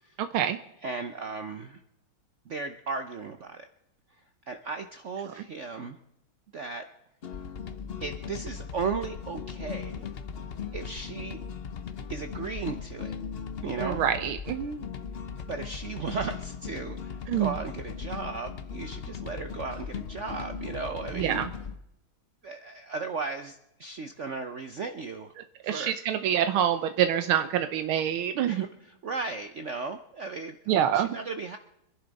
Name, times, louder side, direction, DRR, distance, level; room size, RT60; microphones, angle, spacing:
voice 1, 0.2-0.6 5.4-5.5 13.8-14.9 17.3-17.5 21.1-21.5 25.6-28.6 30.7-31.2, right 10 dB, 85° right, 9 dB, 1.6 m, -26 dB
voice 2, 0.8-1.8 2.5-3.7 4.5-6.0 6.5-6.9 8.0-10.1 10.7-11.4 12.1-13.2 13.6-14.0 15.5-21.5 22.4-25.3 25.6-26.0 28.4-28.7 29.0-31.6, right 4 dB, 65° right, 7 dB, 0.7 m, -36 dB
sound 1, 7.2-21.8, left 6 dB, 85° left, 0.5 m, -38 dB
26.0 x 11.0 x 4.0 m, 0.82 s
omnidirectional pair, 2.3 m